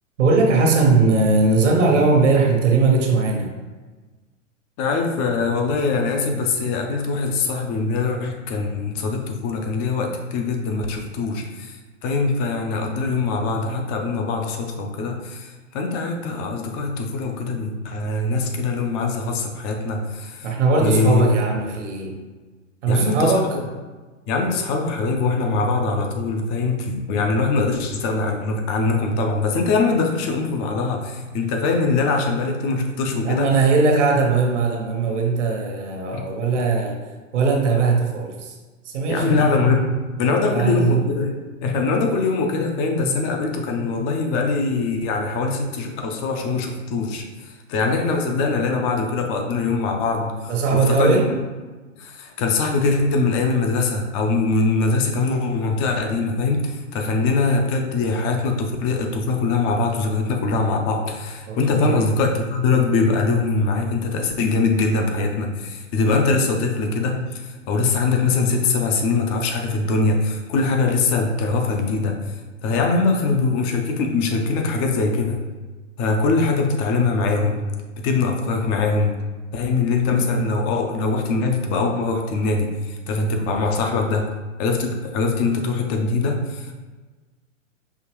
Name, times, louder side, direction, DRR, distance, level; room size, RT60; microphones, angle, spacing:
voice 1, 0.2-3.5 20.4-22.2 22.8-23.4 33.2-37.0 37.3-38.5 38.8-39.5 40.5-40.9 50.5-51.3 61.5-62.1, right 3 dB, 65° right, 1 dB, 1.2 m, -19 dB
voice 2, 4.8-11.8 12.0-20.5 20.8-21.3 22.9-23.4 24.3-33.5 36.1-36.2 39.1-41.3 41.6-51.2 52.0-72.2 72.6-75.4 76.0-77.6 78.0-79.1 79.5-84.3 84.6-86.7, left 3 dB, 25° left, 3 dB, 0.5 m, -22 dB
5.6 x 2.9 x 3.0 m, 1.3 s
hypercardioid pair, 115°, 39 cm